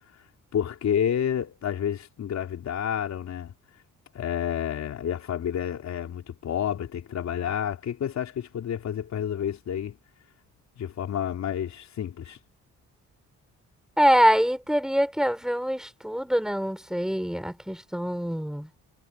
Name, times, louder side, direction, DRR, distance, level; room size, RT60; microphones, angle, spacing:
voice 1, 0.5-3.5 4.1-10.0 10.8-12.4, left 9 dB, 65° left, 4.0 m, -29 dB
voice 2, 14.0-18.7, equal, ahead, 6.5 m, -24 dB
cardioid pair, 90°, 30 cm